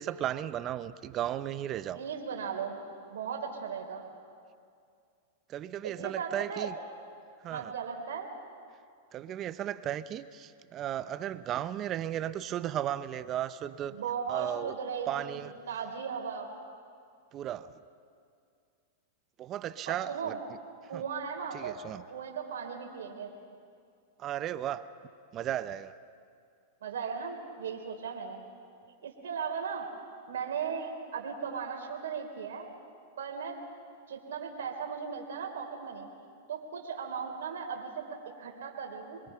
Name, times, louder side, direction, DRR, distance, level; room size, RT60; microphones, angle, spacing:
voice 1, 0.0-2.0 5.5-6.7 7.4-7.7 9.1-14.0 14.3-14.7 15.1-15.6 17.3-17.7 19.4-20.3 20.9-21.0 21.5-22.0 24.2-24.8 25.3-25.9, right 11 dB, 35° right, 13 dB, 0.9 m, -35 dB
voice 2, 1.9-2.8 3.1-4.1 5.8-6.7 7.5-8.3 13.9-16.5 19.9-20.4 20.9-21.8 22.1-23.3 26.8-28.4 29.0-29.9 30.3-32.7 33.2-33.6 34.1-36.1 36.5-39.2, right 6 dB, 80° right, 2 dB, 3.5 m, -37 dB
25.5 x 22.5 x 5.8 m, 2.3 s
hypercardioid pair, 120°, 0 cm